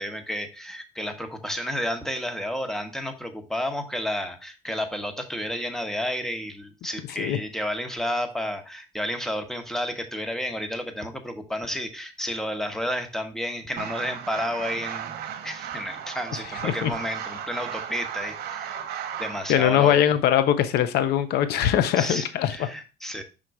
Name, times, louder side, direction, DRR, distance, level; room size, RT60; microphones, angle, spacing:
voice 1, 0.0-15.1 15.4-18.8 19.2-20.0 22.0-23.2, equal, ahead, 1.0 m, -31 dB
sound 1, 13.8-19.5, right 8 dB, 70° right, 0.8 m, -35 dB
voice 2, 19.5-22.5, left 10 dB, 75° left, 0.6 m, -21 dB
5.9 x 3.8 x 4.6 m
cardioid pair, 110°, 17 cm